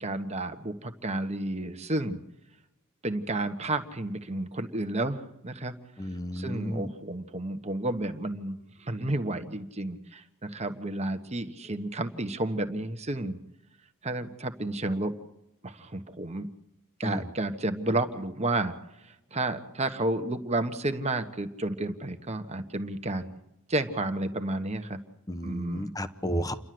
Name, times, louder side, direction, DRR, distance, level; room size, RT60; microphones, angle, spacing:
voice 1, 0.0-2.2 3.0-5.7 6.3-13.4 14.0-15.1 15.6-16.5 17.0-18.7 19.3-23.3 23.7-25.0 25.4-25.9, right 2 dB, 30° right, 8 dB, 1.4 m, -31 dB
voice 2, 6.0-6.9 17.0-17.3 25.3-26.5, equal, 15° left, 11 dB, 1.0 m, -32 dB
29.0 x 12.0 x 7.8 m, 0.89 s
head